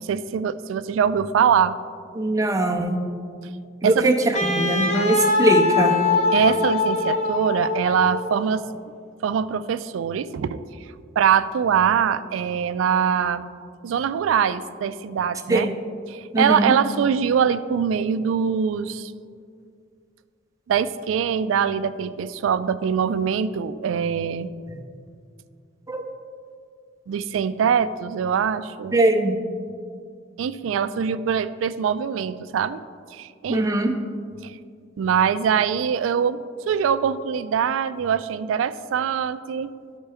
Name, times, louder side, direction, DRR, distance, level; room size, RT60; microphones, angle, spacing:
voice 1, 0.0-1.8 3.8-4.1 6.3-8.6 9.2-10.6 11.2-13.5 13.8-15.7 16.1-19.1 20.7-24.5 27.1-29.0 30.4-32.8 33.1-33.6 34.4-34.5 35.0-36.4 36.7-39.7, right 7 dB, 80° right, 14 dB, 0.3 m, -23 dB
voice 2, 2.2-3.0 3.8-4.1 4.4-6.0 15.5-15.7 16.3-16.7 25.9-26.0 28.9-29.3 33.5-33.9, right 1 dB, 15° right, 3 dB, 0.5 m, -21 dB
Wind instrument woodwind instrument, 4.3-8.4, left 3 dB, 35° left, 0.7 m, -22 dB
12.5 x 4.4 x 3.4 m, 2.3 s
head